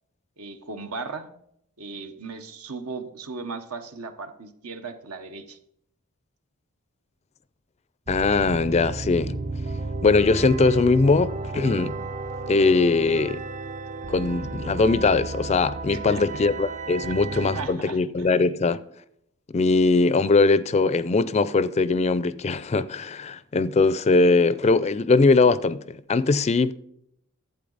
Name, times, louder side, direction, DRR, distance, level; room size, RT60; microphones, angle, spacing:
voice 1, 0.4-1.3 1.8-5.6 15.9-16.2 17.0-18.3, right 4 dB, 80° right, 1.1 m, -37 dB
voice 2, 8.1-9.4 10.0-12.0 12.5-13.4 14.1-18.8 19.5-26.7, left 3 dB, 30° left, 0.4 m, -21 dB
sound 1, 8.1-17.7, right 2 dB, 35° right, 0.5 m, -33 dB
12.0 x 8.2 x 4.0 m
head